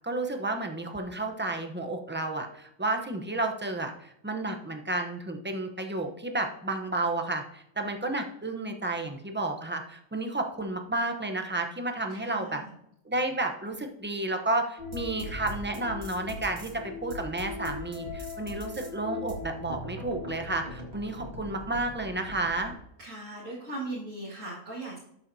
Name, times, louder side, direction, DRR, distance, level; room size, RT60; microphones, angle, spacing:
voice 1, 0.0-12.6 13.0-22.7, right 2 dB, 10° right, 4 dB, 0.6 m, -31 dB
voice 2, 12.1-12.7 23.0-25.0, right 2 dB, 70° right, -7 dB, 2.5 m, -39 dB
sound 1, 14.8-22.8, left 2 dB, 50° right, 2.0 m, -40 dB
12.5 x 7.0 x 2.7 m, 0.76 s
omnidirectional pair, 1.4 m